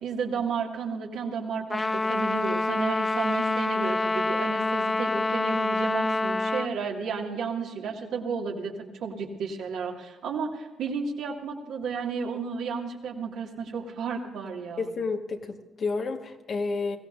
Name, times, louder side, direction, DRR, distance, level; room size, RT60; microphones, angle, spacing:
voice 1, 0.0-14.9, right 5 dB, 75° right, -1 dB, 2.3 m, -32 dB
Trumpet, 1.7-6.7, left 2 dB, 25° left, 0.4 m, -27 dB
voice 2, 14.8-17.0, left 4 dB, 55° left, 3 dB, 1.7 m, -30 dB
22.0 x 16.0 x 2.7 m, 1.1 s
supercardioid pair, 60°, 0 cm